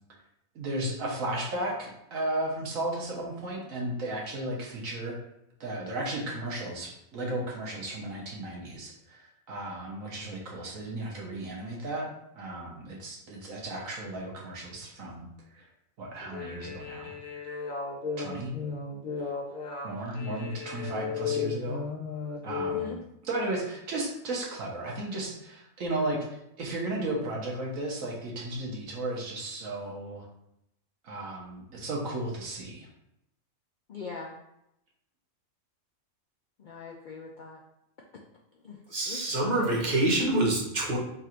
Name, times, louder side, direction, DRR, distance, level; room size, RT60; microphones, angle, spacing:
voice 1, 0.5-5.2 5.6-9.2 9.5-12.1 12.4-15.2 15.5-15.6 16.0-17.1 18.2-18.5 19.8-21.9 22.4-22.9 23.2-30.3 31.0-32.9, right 1 dB, 75° right, -2 dB, 1.4 m, -34 dB
sound 1, 16.2-22.9, left 5 dB, 45° left, 0.8 m, -35 dB
voice 2, 22.6-23.0 33.9-34.3 36.6-37.6 38.6-38.8 39.0-39.9, left 4 dB, 75° left, -1 dB, 0.4 m, -42 dB
voice 3, 38.9-41.0, right 1 dB, 35° right, -2 dB, 1.0 m, -26 dB
3.8 x 2.5 x 4.3 m, 0.81 s
omnidirectional pair, 1.4 m